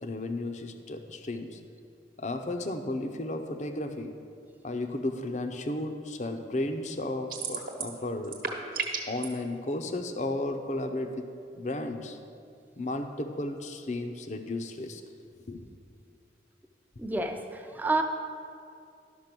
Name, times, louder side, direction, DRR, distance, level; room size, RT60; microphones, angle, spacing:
voice 1, 0.0-1.6 2.2-4.1 4.6-8.4 9.1-11.3 11.5-12.2 12.8-15.0 15.5-15.6, left 2 dB, 40° left, 6 dB, 0.6 m, -34 dB
sound 1, 7.3-8.0 8.2-9.3, right 6 dB, 50° right, 1.1 m, -33 dB
voice 2, 17.0-18.0, right 2 dB, 10° right, 5 dB, 0.6 m, -29 dB
12.0 x 5.9 x 6.0 m, 2.5 s
head